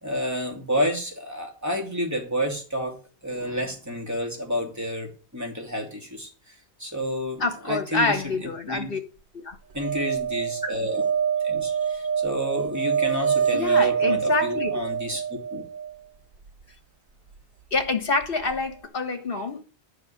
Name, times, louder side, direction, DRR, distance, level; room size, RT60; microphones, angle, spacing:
voice 1, 0.0-3.0 3.2-6.5 6.8-8.9 9.7-11.0 11.4-15.6, equal, 15° right, 2.8 m, -30 dB
voice 2, 7.4-9.0 9.3-9.6 11.7-11.8 13.5-14.7 17.7-19.6, left 3 dB, 60° left, 1.7 m, -27 dB
sound 1, 9.8-16.0 18.2-18.3 18.5-18.6, right 7 dB, 55° right, 0.8 m, -25 dB
11.5 x 4.9 x 8.6 m
omnidirectional pair, 1.1 m